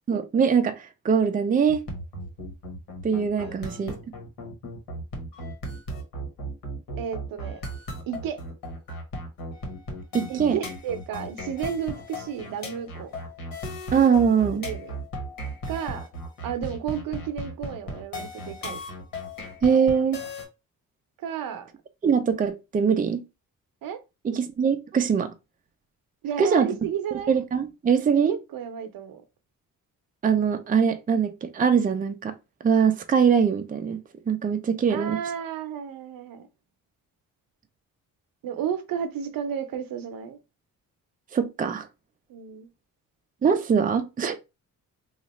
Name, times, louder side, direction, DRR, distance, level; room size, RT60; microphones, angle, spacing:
voice 1, 0.1-1.8 3.0-4.0 10.1-10.6 13.9-14.6 19.6-20.2 22.0-23.2 24.2-25.3 26.4-26.7 27.3-28.4 30.2-32.3 32.6-34.0 34.3-35.2 41.3-41.9 43.4-44.4, right 6 dB, 25° right, 0.5 m, -22 dB
sound 1, 1.7-20.5, equal, 75° left, 1.4 m, -36 dB
voice 2, 7.0-7.6 8.1-8.4 10.3-13.1 14.5-14.9 15.7-16.1 16.4-18.8 21.2-21.7 23.8-24.0 26.2-27.3 28.1-29.2 34.9-36.5 38.4-40.4 42.3-42.7, right 8 dB, 80° right, 0.7 m, -32 dB
3.0 x 2.4 x 4.1 m
cardioid pair, 105°, 34 cm